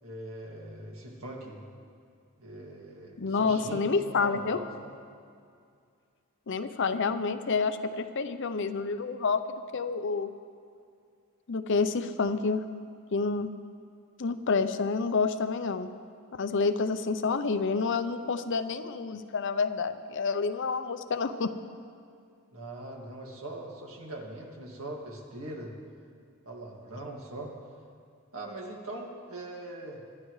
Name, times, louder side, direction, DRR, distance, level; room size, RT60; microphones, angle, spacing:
voice 1, 0.0-1.6 2.4-5.0 22.5-25.7 26.5-27.5 28.3-30.0, right 1 dB, 70° right, -1 dB, 2.1 m, -41 dB
voice 2, 3.2-4.6 6.5-10.3 11.5-12.6 13.1-13.5 14.2-15.9 16.3-21.5, left 4 dB, 55° left, 10 dB, 0.6 m, -28 dB
24.5 x 11.5 x 3.2 m, 2.3 s
head